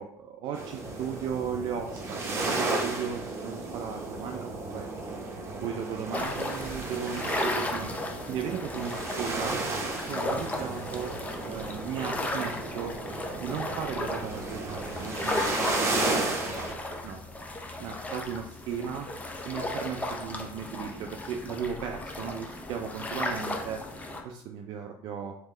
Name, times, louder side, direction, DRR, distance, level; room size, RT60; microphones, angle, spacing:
voice 1, 0.0-4.9 5.6-7.9 8.3-9.6 10.1-12.9 13.3-16.2 16.6-17.2 17.8-19.1 19.4-23.8 24.2-25.4, right 7 dB, 60° right, 3 dB, 0.4 m, -36 dB
sound 1, 0.5-16.7, right 2 dB, 30° right, 0.8 m, -34 dB
sound 2, 6.1-24.2, left 2 dB, 15° left, 0.6 m, -35 dB
3.5 x 2.8 x 3.2 m, 0.70 s
supercardioid pair, 90°, 9 cm